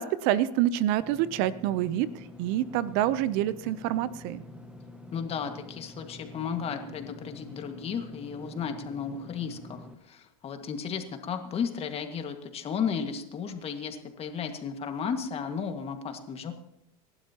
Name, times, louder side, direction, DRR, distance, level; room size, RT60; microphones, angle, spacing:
voice 1, 0.0-4.4, right 12 dB, 55° right, 16 dB, 0.7 m, -27 dB
Engine / Mechanisms, 1.0-9.9, left 2 dB, 5° right, 1.3 m, -47 dB
voice 2, 5.1-16.5, left 6 dB, 30° left, 6 dB, 1.9 m, -34 dB
28.0 x 12.0 x 3.0 m, 0.76 s
supercardioid pair, 120°, 19 cm